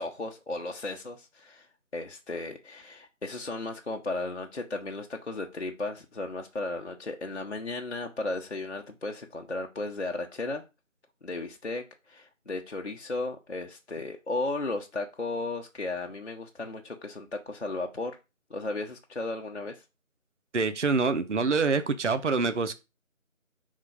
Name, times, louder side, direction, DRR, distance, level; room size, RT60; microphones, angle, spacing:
voice 1, 0.0-1.7 1.9-10.6 11.2-18.2 18.5-19.8, left 2 dB, 55° left, 0.8 m, -35 dB
voice 2, 20.5-22.7, right 4 dB, 60° right, 0.6 m, -26 dB
5.3 x 3.7 x 4.9 m
figure-of-eight pair, 170°, 41 cm